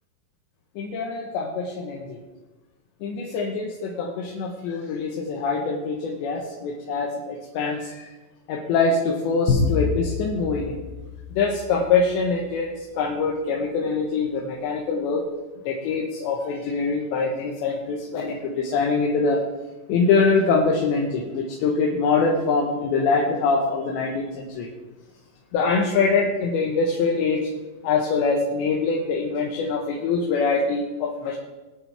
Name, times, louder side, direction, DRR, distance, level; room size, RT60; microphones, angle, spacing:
voice 1, 0.8-2.2 3.0-8.1 8.5-10.8 11.3-15.2 15.7-19.4 19.9-24.7 25.5-27.4 27.8-31.4, left 4 dB, 85° left, -1 dB, 3.4 m, -24 dB
sound 1, 9.5-12.1, left 4 dB, 65° left, 2.7 m, -27 dB
22.5 x 9.2 x 3.5 m, 1.2 s
omnidirectional pair, 5.0 m